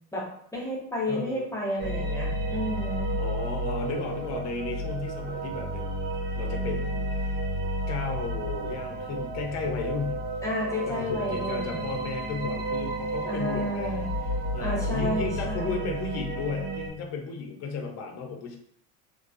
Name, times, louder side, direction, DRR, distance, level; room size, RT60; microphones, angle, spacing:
voice 1, 0.1-3.1 10.4-11.8 13.3-14.1 14.6-15.9, left 1 dB, 10° left, -3 dB, 0.9 m, -31 dB
voice 2, 1.1-1.5 3.2-7.4 7.9-10.2 10.7-14.1 14.5-18.6, left 5 dB, 45° left, 2 dB, 0.6 m, -34 dB
sound 1, 1.8-16.9, right 1 dB, 60° right, 0.6 m, -31 dB
2.3 x 2.3 x 2.5 m, 0.66 s
supercardioid pair, 95°, 39 cm